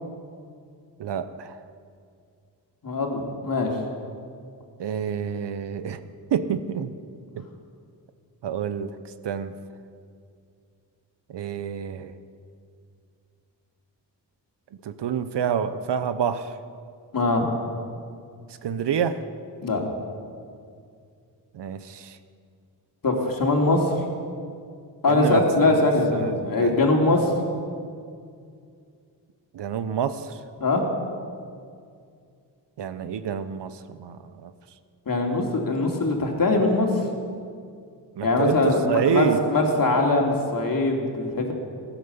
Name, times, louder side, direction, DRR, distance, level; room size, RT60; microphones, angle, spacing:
voice 1, 1.0-1.6 4.8-6.0 6.3-6.9 7.3-7.4 8.4-9.5 11.3-12.1 14.8-16.6 18.6-19.2 21.5-22.2 25.1-25.8 26.1-26.7 29.5-30.4 32.8-34.5 38.2-39.4, right 8 dB, 65° right, 12 dB, 0.9 m, -28 dB
voice 2, 2.8-3.7 17.1-17.5 19.6-19.8 23.0-23.9 25.0-27.3 30.6-30.8 35.1-37.0 38.2-41.5, left 2 dB, 50° left, 1 dB, 3.0 m, -22 dB
16.0 x 10.0 x 6.9 m, 2.3 s
supercardioid pair, 50°, 44 cm